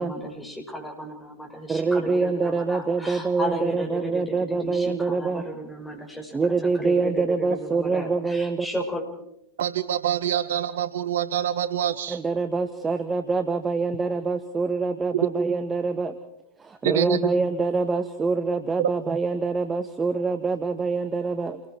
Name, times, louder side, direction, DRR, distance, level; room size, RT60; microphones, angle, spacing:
voice 1, 0.0-6.4 6.8-9.1, equal, 5° left, 0 dB, 6.0 m, -34 dB
voice 2, 1.7-5.5 6.3-8.7 12.1-16.2 16.6-21.6, right 4 dB, 15° right, 8 dB, 1.2 m, -25 dB
voice 3, 9.6-12.2 16.8-17.3 18.8-18.9, right 10 dB, 60° right, 14 dB, 0.8 m, -25 dB
29.0 x 21.5 x 4.6 m, 0.79 s
figure-of-eight pair, 90°, 0 cm